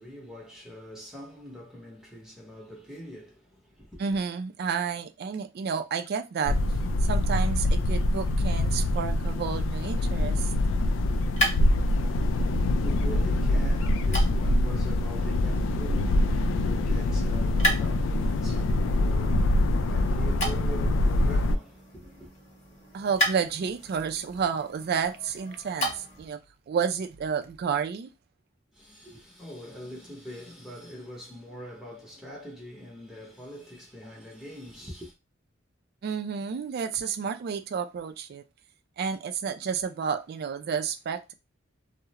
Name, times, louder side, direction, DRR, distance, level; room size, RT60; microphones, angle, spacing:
voice 1, 0.0-4.2 12.5-22.3 28.7-35.1, equal, 5° right, 0.7 m, -43 dB
voice 2, 4.0-6.6 7.0-10.5 22.9-26.4 26.7-28.1 36.0-38.4 39.0-41.3, right 6 dB, 55° right, 0.3 m, -30 dB
sound 1, 6.5-21.6, left 1 dB, 80° left, 0.3 m, -24 dB
sound 2, 10.7-26.3, equal, 35° left, 1.0 m, -36 dB
2.3 x 2.0 x 2.8 m
head